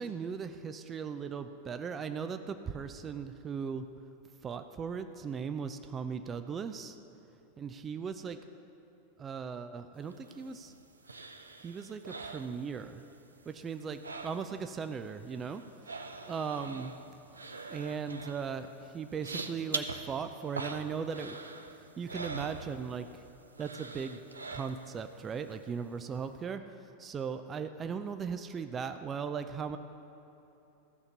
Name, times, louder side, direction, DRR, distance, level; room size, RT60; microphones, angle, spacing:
voice 1, 0.0-3.8 4.4-7.0 7.6-8.4 9.2-10.7 11.6-13.0 13.5-15.6 16.2-16.9 17.7-21.4 22.0-23.2 23.6-24.2 24.5-29.8, right 6 dB, 20° right, 9 dB, 0.5 m, -38 dB
sound 1, 10.1-13.2 13.4-14.8 15.0-23.2 23.5-25.1 25.5-25.6, right 3 dB, 75° right, 0.6 m, -43 dB
14.5 x 6.6 x 7.0 m, 3.0 s
figure-of-eight pair, 90°, 0 cm